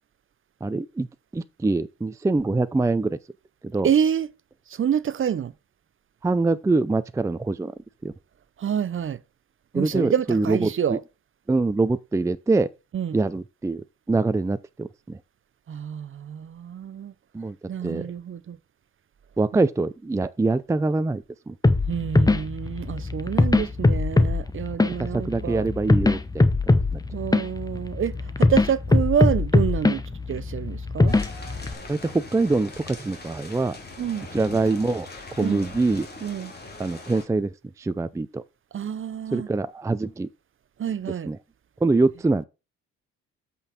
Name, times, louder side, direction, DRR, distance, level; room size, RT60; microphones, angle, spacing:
voice 1, 0.6-1.1 1.3-3.2 3.7-3.9 6.2-7.7 8.0-8.1 9.7-11.0 11.5-12.7 13.1-13.8 14.1-15.2 17.3-17.6 17.8-18.0 19.4-21.5 25.0-26.5 26.9-27.0 31.9-33.8 34.3-35.1 35.4-36.1 36.8-37.5 37.8-38.4 39.3-40.3 41.3-41.4 41.8-42.4, right 3 dB, 10° right, 0.4 m, -24 dB
voice 2, 3.8-4.3 4.7-5.5 8.6-9.2 9.7-11.0 12.9-13.2 15.7-17.1 17.7-18.6 21.9-25.7 27.1-30.0 30.3-31.2 34.0-34.3 35.4-35.7 36.2-36.5 38.7-39.5 40.8-41.3, right 8 dB, 45° right, 0.7 m, -27 dB
sound 1, 21.6-31.7, left 2 dB, 10° left, 0.9 m, -22 dB
sound 2, 31.1-37.2, left 3 dB, 30° left, 2.9 m, -41 dB
8.2 x 5.4 x 4.1 m
cardioid pair, 90°, 30 cm